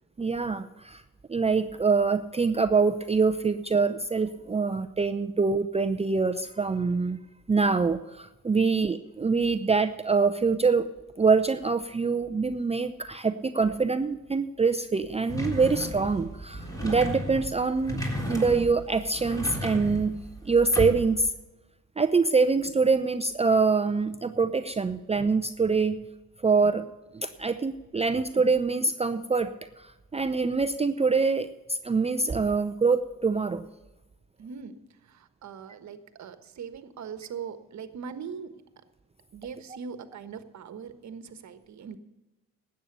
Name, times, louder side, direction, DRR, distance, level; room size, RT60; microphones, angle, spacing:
voice 1, 0.2-1.0 1.3-7.2 7.5-10.9 11.2-18.0 18.3-20.2 20.4-21.3 22.0-26.0 26.4-26.9 27.1-33.7, right 4 dB, 20° right, 9 dB, 0.6 m, -25 dB
sound 1, 15.3-21.3, equal, 10° left, 3.7 m, -34 dB
voice 2, 34.4-38.6 39.3-42.0, right 6 dB, 55° right, 10 dB, 1.4 m, -41 dB
12.5 x 8.9 x 6.7 m, 1.1 s
supercardioid pair, 65°, 34 cm